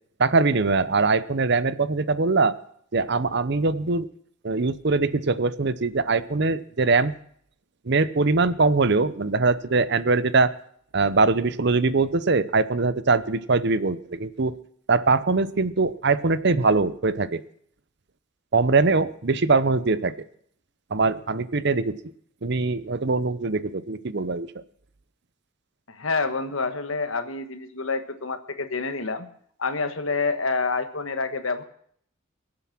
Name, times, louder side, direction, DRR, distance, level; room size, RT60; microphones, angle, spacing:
voice 1, 0.2-2.6 2.9-4.1 4.4-7.1 7.9-10.5 10.9-14.6 14.9-17.4 18.5-20.1 20.9-22.0 22.4-24.5, right 3 dB, 55° right, 15 dB, 0.8 m, -22 dB
voice 2, 25.9-29.3 29.6-31.6, left 4 dB, 80° left, 10 dB, 1.4 m, -27 dB
22.5 x 7.8 x 6.0 m, 0.65 s
head